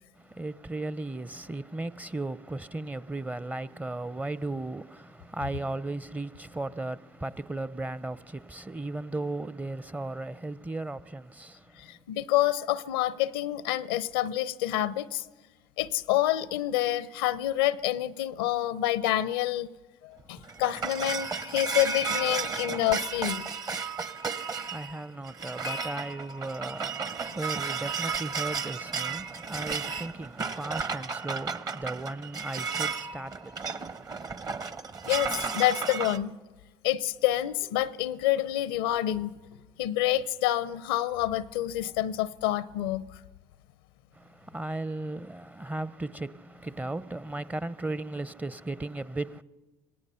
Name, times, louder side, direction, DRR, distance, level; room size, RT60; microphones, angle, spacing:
voice 1, 0.1-12.0 24.4-34.5 44.1-49.4, right 2 dB, 15° right, 0.6 m, -36 dB
voice 2, 11.8-15.3 15.8-19.7 20.0-23.5 35.1-36.3 36.8-39.4 39.8-43.2, left 14 dB, 85° left, 0.6 m, -28 dB
sound 1, 20.2-36.2, right 5 dB, 35° right, 1.0 m, -33 dB
26.0 x 18.0 x 5.7 m
hypercardioid pair, 65°, 11 cm